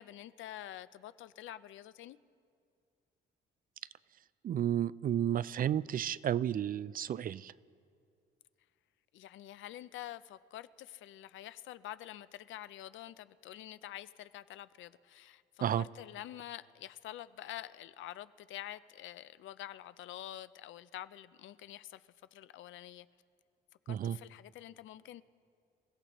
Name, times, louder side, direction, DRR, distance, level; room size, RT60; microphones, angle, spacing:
voice 1, 0.0-2.2 9.1-23.1 23.9-25.2, left 13 dB, 75° left, 15 dB, 0.5 m, -47 dB
voice 2, 4.4-7.5 15.6-15.8 23.9-24.2, right 10 dB, 45° right, 18 dB, 0.4 m, -32 dB
27.5 x 16.0 x 3.0 m, 2.3 s
cardioid pair, 90°, 20 cm